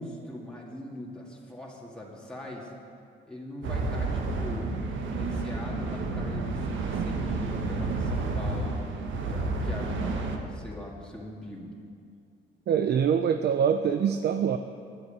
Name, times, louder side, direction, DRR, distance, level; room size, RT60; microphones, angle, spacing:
voice 1, 0.0-2.7 3.2-4.7 5.1-8.8 9.2-11.7, left 1 dB, 5° left, -4 dB, 2.2 m, -42 dB
sound 1, 3.6-10.4, right 3 dB, 75° right, 1.4 m, -30 dB
voice 2, 12.7-14.6, right 8 dB, 55° right, 8 dB, 0.6 m, -24 dB
9.9 x 8.0 x 9.3 m, 2.3 s
cardioid pair, 90°, 20 cm